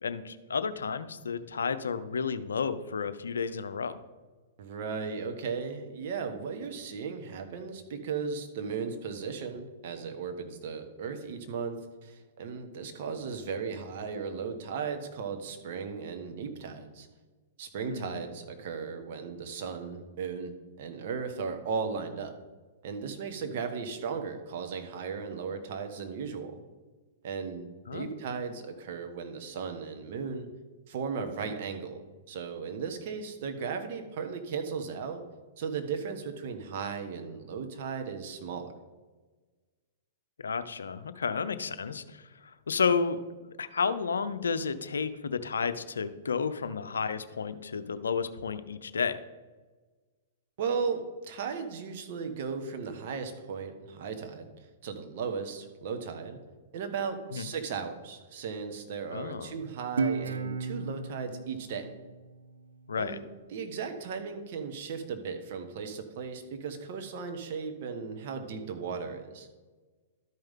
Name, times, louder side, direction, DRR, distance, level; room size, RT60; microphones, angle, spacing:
voice 1, 0.0-4.0 17.9-18.2 27.9-28.1 40.4-49.2 57.3-57.5 59.1-59.5 62.9-63.2, left 5 dB, 85° left, 12 dB, 0.5 m, -32 dB
voice 2, 4.6-17.1 17.6-22.3 22.8-26.6 27.2-30.5 30.9-35.2 35.6-38.7 50.6-54.5 54.8-56.4 56.7-61.9 62.9-63.2 63.5-69.5, right 5 dB, 55° right, 6 dB, 1.3 m, -36 dB
Guitar, 60.0-63.2, right 4 dB, 80° right, 0.5 m, -34 dB
12.5 x 5.4 x 3.6 m, 1.3 s
hypercardioid pair, 115°, 0 cm